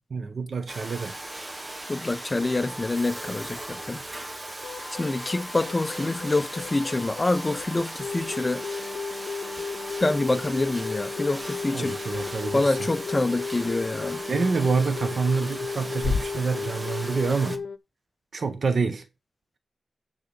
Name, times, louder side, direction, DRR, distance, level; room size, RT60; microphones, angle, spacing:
voice 1, 0.1-1.2 11.7-12.7 14.3-17.6 18.3-19.0, right 4 dB, 55° right, 1.1 m, -27 dB
Domestic sounds home sounds, 0.7-17.6, right 1 dB, 20° right, 1.1 m, -38 dB
sound 1, 1.4-1.5 1.8-1.9 2.3-2.4 2.8-2.9 3.2-3.3 3.7-3.8 4.2-4.3 4.6-17.8, left 5 dB, 85° left, 0.7 m, -35 dB
voice 2, 1.9-4.0 5.0-8.6 10.0-12.0 12.5-14.2, left 2 dB, 25° left, 0.7 m, -26 dB
sound 2, 9.7-16.7, left 5 dB, 65° left, 1.0 m, -38 dB
10.5 x 3.9 x 6.8 m
wide cardioid pair, 135°, 0 cm